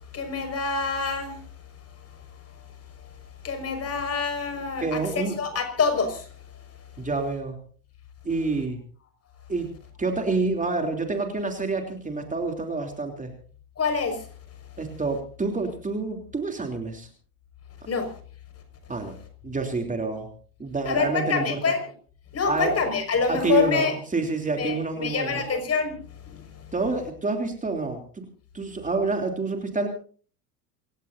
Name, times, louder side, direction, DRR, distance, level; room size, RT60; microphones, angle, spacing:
voice 1, 0.1-1.4 3.4-6.3 13.8-14.2 17.9-18.1 20.9-21.8 22.3-23.9 24.6-25.9, left 5 dB, 30° left, 7 dB, 5.8 m, -26 dB
voice 2, 4.8-5.4 7.0-7.6 8.2-8.8 9.5-13.3 14.8-17.1 18.9-19.1 19.4-20.3 20.6-21.6 22.5-22.8 23.3-25.4 26.7-28.2 28.5-29.9, right 3 dB, 15° right, 4 dB, 3.3 m, -28 dB
27.5 x 16.5 x 2.7 m, 0.43 s
hypercardioid pair, 75°, 47 cm